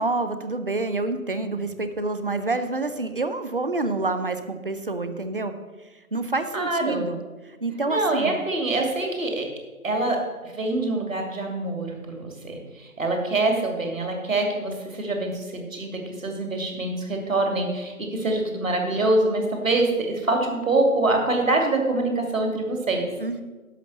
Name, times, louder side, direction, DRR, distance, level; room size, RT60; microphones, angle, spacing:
voice 1, 0.0-5.5 6.1-8.4 23.2-23.4, right 3 dB, 35° right, 10 dB, 0.7 m, -28 dB
voice 2, 6.5-7.1 7.9-9.5 9.8-23.1, right 2 dB, 60° right, 2 dB, 2.7 m, -25 dB
11.0 x 5.9 x 6.9 m, 1.3 s
figure-of-eight pair, 155°, 45 cm